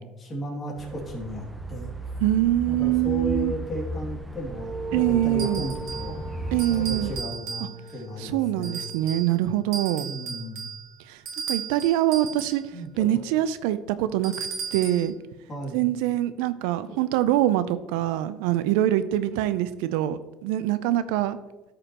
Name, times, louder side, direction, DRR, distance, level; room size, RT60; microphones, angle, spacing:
voice 1, 0.0-1.9 2.6-8.8 10.0-10.7 12.7-13.2 15.5-15.9 17.0-17.1, equal, 25° left, -2 dB, 2.4 m, -35 dB
sound 1, 0.8-7.2, right 1 dB, 10° right, 0.6 m, -36 dB
voice 2, 2.2-3.5 4.9-5.7 6.5-7.1 8.2-10.1 11.1-11.2 11.5-12.6 13.0-15.1 15.7-21.4, right 13 dB, 85° right, 14 dB, 0.4 m, -24 dB
sound 2, 4.5-9.3, right 2 dB, 30° right, 1.5 m, -39 dB
sound 3, 5.4-6.2 6.6-8.0 8.6-9.3 9.7-12.7 14.2-15.1, right 6 dB, 65° right, 1.7 m, -35 dB
13.0 x 5.1 x 2.9 m, 1.1 s
cardioid pair, 115°, 0 cm